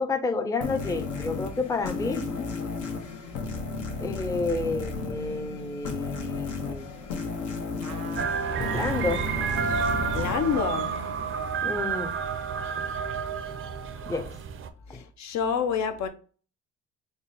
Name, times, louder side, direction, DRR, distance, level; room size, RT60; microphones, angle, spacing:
voice 1, 0.0-2.5 4.0-6.9 8.7-9.2 11.6-12.1 14.1-14.3 14.9-15.0, left 3 dB, 10° left, 0.4 m, -30 dB
sound 1, 0.6-11.8, left 4 dB, 80° left, 1.0 m, -34 dB
sound 2, 7.8-11.5 12.0-12.1, right 6 dB, 85° right, 0.7 m, -40 dB
sound 3, 8.2-14.7, right 6 dB, 45° right, 0.5 m, -30 dB
voice 2, 10.1-10.9 13.9-14.1 14.9-16.1, left 7 dB, 65° left, 0.6 m, -28 dB
3.8 x 2.1 x 3.9 m
cardioid pair, 90°, 30 cm